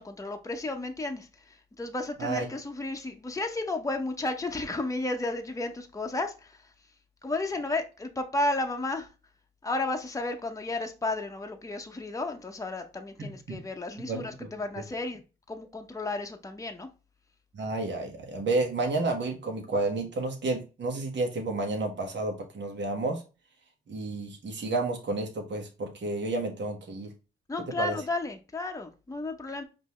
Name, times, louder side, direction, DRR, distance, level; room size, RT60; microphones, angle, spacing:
voice 1, 0.0-6.7 7.2-9.1 9.6-15.2 15.5-16.9 27.5-29.6, left 2 dB, 15° left, 0.7 m, -33 dB
voice 2, 13.2-13.6 14.1-14.5 17.5-23.2 23.9-27.1 27.8-28.0, right 2 dB, 60° right, 1.2 m, -31 dB
5.2 x 2.7 x 3.1 m
cardioid pair, 70°, 21 cm